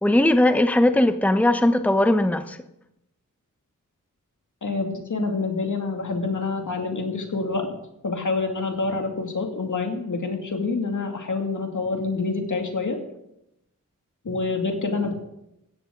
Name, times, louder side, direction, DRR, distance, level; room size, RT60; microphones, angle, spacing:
voice 1, 0.0-2.6, left 1 dB, 5° left, 9 dB, 0.9 m, -19 dB
voice 2, 4.6-7.7 8.0-13.0 14.2-15.1, left 3 dB, 65° left, 3 dB, 2.4 m, -27 dB
15.5 x 13.5 x 3.9 m, 0.84 s
cardioid pair, 45°, 32 cm